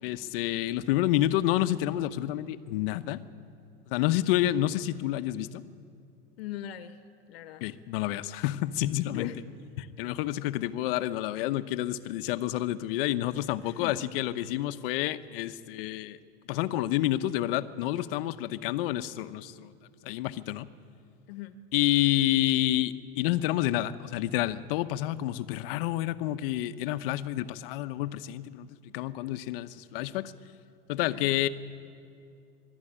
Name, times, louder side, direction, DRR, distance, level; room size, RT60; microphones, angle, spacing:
voice 1, 0.0-3.2 3.9-5.6 7.6-9.3 9.8-16.2 16.5-19.7 20.0-20.7 21.7-30.3 30.9-31.5, left 14 dB, 70° left, 12 dB, 0.9 m, -29 dB
voice 2, 6.4-7.0 7.3-7.6 9.1-9.4 13.6-14.0 21.3-21.6 31.1-31.3, left 11 dB, 85° left, 11 dB, 1.1 m, -40 dB
23.5 x 12.5 x 10.0 m, 2.4 s
supercardioid pair, 135°, 30 cm